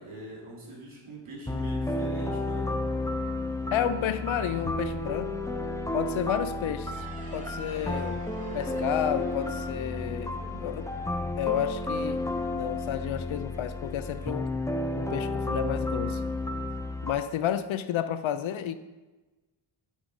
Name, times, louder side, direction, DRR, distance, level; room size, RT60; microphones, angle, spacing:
voice 1, 0.0-2.7, right 1 dB, 75° right, -2 dB, 2.5 m, -42 dB
sound 1, 1.5-17.1, left 2 dB, 5° left, 0.5 m, -32 dB
voice 2, 3.7-5.3 5.9-7.1 7.3-8.2 8.5-10.9 11.4-12.2 12.5-14.5 15.0-16.2 17.0-18.7, left 10 dB, 70° left, 12 dB, 0.6 m, -31 dB
sound 2, 6.8-12.1, right 1 dB, 15° right, 1.9 m, -46 dB
8.7 x 3.7 x 5.1 m, 1.2 s
wide cardioid pair, 105°, 49 cm